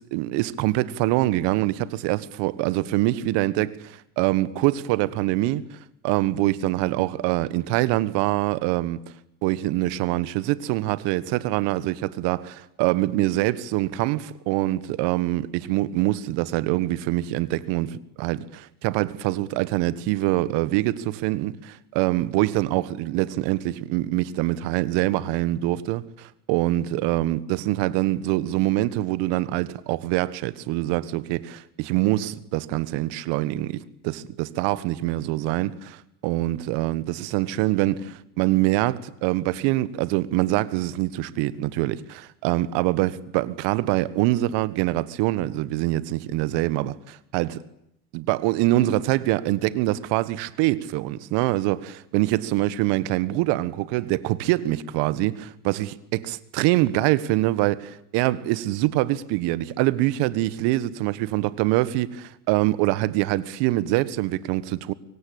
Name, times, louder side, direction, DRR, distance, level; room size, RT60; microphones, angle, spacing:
voice 1, 0.0-5.8 6.0-9.0 9.4-47.6 48.1-64.9, right 16 dB, 65° right, 1.6 m, -24 dB
25.0 x 23.5 x 8.7 m
hypercardioid pair, 75°, 44 cm